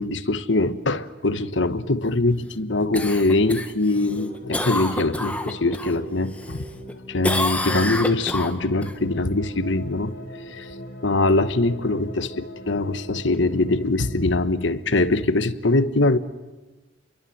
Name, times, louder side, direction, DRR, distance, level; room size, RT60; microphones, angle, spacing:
voice 1, 0.0-6.6 7.1-10.1 10.5-10.7 11.0-16.2, left 2 dB, 70° left, 1.3 m, -22 dB
Cough, 2.9-5.9 6.3-6.9 7.2-8.9 13.3-13.4, left 1 dB, 5° left, 1.5 m, -28 dB
sound 1, 3.9-15.1, equal, 45° left, 8.0 m, -40 dB
30.0 x 22.5 x 7.9 m
head